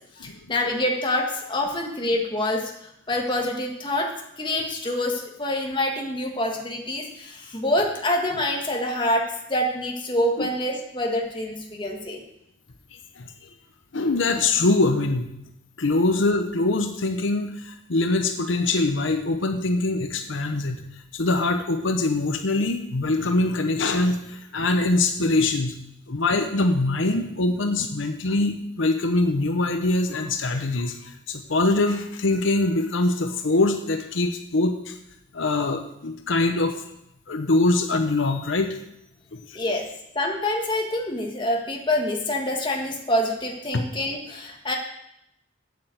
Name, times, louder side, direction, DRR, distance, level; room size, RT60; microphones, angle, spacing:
voice 1, 0.2-4.1 4.4-12.2 39.5-39.9 40.1-44.7, left 1 dB, 25° left, 1 dB, 1.7 m, -26 dB
voice 2, 12.9-13.3 13.9-15.3 15.8-20.9 21.1-25.8 26.1-35.0 35.3-36.8 37.3-38.8 39.3-39.6 43.7-43.8, left 2 dB, 80° left, 6 dB, 0.9 m, -23 dB
8.4 x 7.9 x 7.7 m, 0.82 s
head